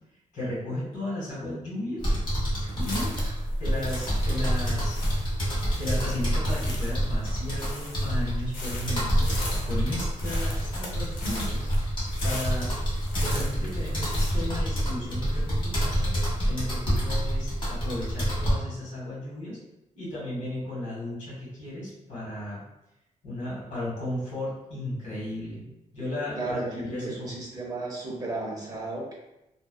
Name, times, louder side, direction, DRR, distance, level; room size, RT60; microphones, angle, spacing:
voice 1, 0.3-2.1 2.8-3.1 3.6-5.0 5.8-9.3 9.6-11.7 12.2-12.7 13.2-16.2 16.4-19.6 19.9-22.6 23.2-25.7 25.9-27.3, left 1 dB, 65° left, -7 dB, 1.5 m, -34 dB
sound 1, 2.0-18.5, equal, 40° left, 1.1 m, -27 dB
sound 2, 2.8-14.3, left 2 dB, 90° left, 0.6 m, -41 dB
voice 2, 26.3-29.1, right 2 dB, 25° right, -3 dB, 0.6 m, -34 dB
2.6 x 2.1 x 2.2 m, 0.91 s
wide cardioid pair, 175°, 13 cm